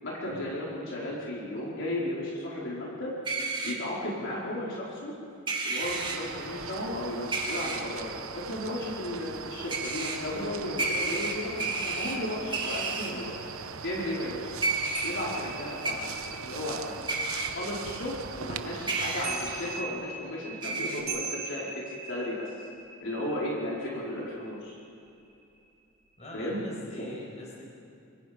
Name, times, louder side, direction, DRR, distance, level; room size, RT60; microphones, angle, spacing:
voice 1, 0.0-3.1 3.6-5.1 5.6-13.3 13.8-14.5 15.0-16.1 16.4-16.9 17.4-21.7 22.1-22.5 23.0-24.8 26.3-26.6 27.0-27.1, left 1 dB, 60° left, -5 dB, 4.6 m, -34 dB
sound 1, 3.2-3.7 5.5-6.2 7.3-7.8 9.7-10.2 10.8-12.2 12.5-13.1 14.6-15.1 15.8-15.9 17.1-17.5 18.9-19.3 20.6-21.0, right 3 dB, 20° right, 2.5 m, -31 dB
sound 2, 5.8-19.8, right 6 dB, 70° right, 0.9 m, -40 dB
sound 3, 14.9-18.5 19.0-25.0 25.3-25.6, right 4 dB, 45° right, 5.0 m, -41 dB
voice 2, 15.1-15.5 18.3-18.9 26.2-27.7, equal, 30° left, -2 dB, 5.4 m, -45 dB
25.0 x 25.0 x 5.2 m, 2.7 s
head